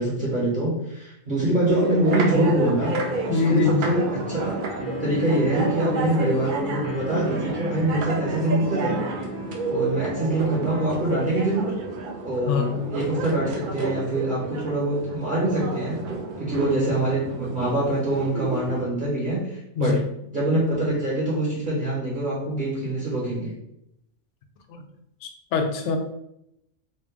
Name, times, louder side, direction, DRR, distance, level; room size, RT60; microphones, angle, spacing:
voice 1, 0.0-3.0 3.3-4.6 5.0-9.0 9.7-11.7 12.2-16.0 16.4-20.0 20.3-23.5, right 1 dB, 40° right, -7 dB, 1.0 m, -24 dB
sound 1, 1.7-18.8, right 3 dB, 60° right, 0.5 m, -30 dB
sound 2, 2.8-10.8, left 1 dB, 45° left, 1.2 m, -37 dB
voice 2, 3.3-3.9 9.4-9.5 12.5-12.8 19.8-20.0 24.7-24.8 25.2-26.0, left 4 dB, 65° left, 5 dB, 0.8 m, -23 dB
3.2 x 2.5 x 3.4 m, 0.80 s
omnidirectional pair, 1.5 m